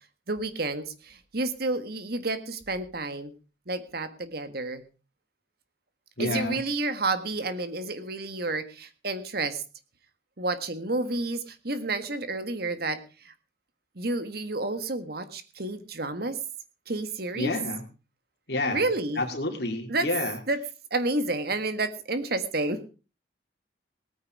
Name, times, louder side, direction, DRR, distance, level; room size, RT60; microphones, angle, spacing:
voice 1, 0.3-3.3 3.7-4.8 6.2-9.6 10.4-13.3 13.9-16.4 16.9-17.5 18.7-19.2 19.9-20.1 20.5-20.6 20.9-22.8, right 2 dB, 55° right, 11 dB, 1.6 m, -30 dB
voice 2, 6.2-6.6 17.3-17.8 18.5-18.8 19.2-20.4, left 2 dB, 60° left, 4 dB, 3.2 m, -29 dB
18.5 x 9.5 x 4.7 m, 0.33 s
head